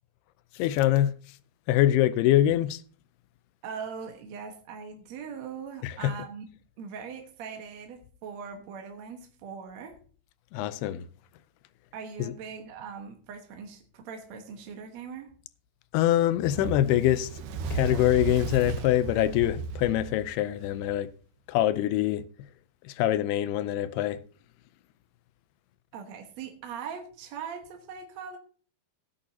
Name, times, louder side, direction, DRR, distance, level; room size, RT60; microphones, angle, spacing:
voice 1, 0.6-1.1 1.7-2.8 5.8-6.1 10.5-11.1 12.2-12.3 15.9-17.3 17.7-21.1 21.5-22.2 23.0-24.2, left 13 dB, 80° left, 2.4 m, -24 dB
voice 2, 3.6-6.5 6.8-10.0 11.9-15.3 25.9-28.4, right 6 dB, 60° right, 1.9 m, -41 dB
Fire, 16.4-20.9, right 4 dB, 85° right, 3.4 m, -35 dB
17.0 x 8.8 x 2.8 m
omnidirectional pair, 4.8 m